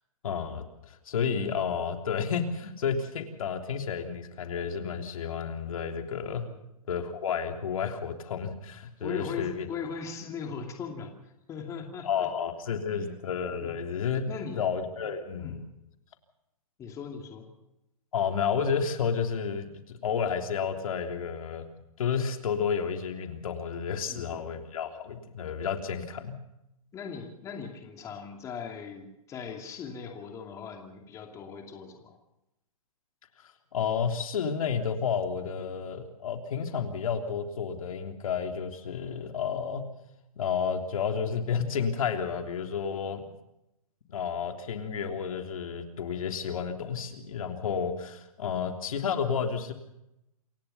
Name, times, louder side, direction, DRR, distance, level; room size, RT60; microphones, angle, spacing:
voice 1, 0.2-6.4 6.9-9.7 12.0-15.6 18.1-21.7 22.0-26.4 33.7-39.9 40.3-43.3 44.1-49.7, left 6 dB, 65° left, 5 dB, 3.3 m, -31 dB
voice 2, 9.0-11.1 11.5-12.3 12.9-13.1 13.6-13.7 14.3-14.6 15.4-15.7 16.8-17.5 24.1-24.4 26.9-32.2, left 6 dB, 15° left, 3 dB, 2.6 m, -39 dB
28.0 x 16.5 x 5.7 m, 0.86 s
hypercardioid pair, 160°, 19 cm